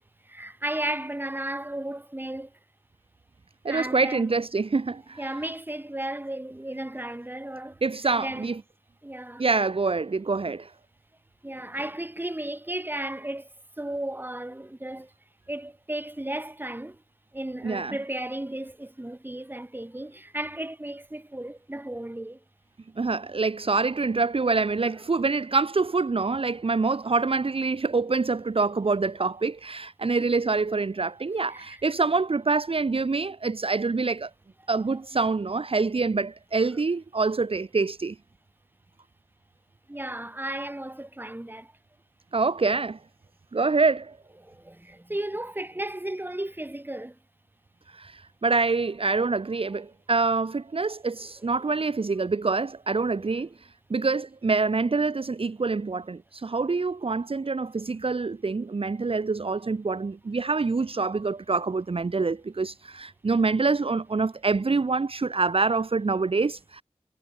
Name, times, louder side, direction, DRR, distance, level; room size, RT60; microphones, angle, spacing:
voice 1, 0.2-2.5 3.7-4.4 5.2-7.8 8.2-8.5 9.0-9.5 11.4-13.5 13.8-15.1 15.5-17.0 17.3-22.4 30.4-30.5 31.5-31.8 34.9-35.0 39.9-41.7 44.4-47.2 51.2-51.3 53.2-53.3 53.9-54.0, right 1 dB, 15° right, 2.0 m, -34 dB
voice 2, 3.6-5.3 7.8-8.6 9.4-10.7 17.6-18.0 23.0-34.3 34.7-38.2 42.3-43.0 43.5-44.2 47.9-53.5 53.9-66.8, right 4 dB, 55° right, 0.8 m, -26 dB
wide cardioid pair, 60°, 11 cm